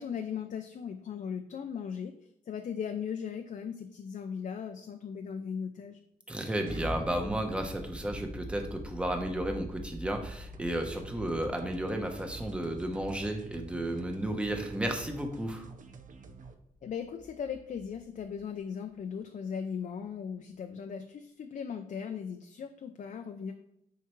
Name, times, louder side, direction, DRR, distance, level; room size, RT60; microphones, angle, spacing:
voice 1, 0.0-2.1 2.5-6.0 16.8-23.5, left 7 dB, 60° left, 6 dB, 0.5 m, -38 dB
voice 2, 6.3-15.7, right 1 dB, 5° right, 4 dB, 0.9 m, -33 dB
sound 1, 6.6-18.4, equal, 35° right, 2.6 m, -44 dB
sound 2, 10.5-16.5, right 5 dB, 60° right, 0.6 m, -50 dB
9.2 x 4.6 x 3.1 m, 0.76 s
wide cardioid pair, 155°, 15 cm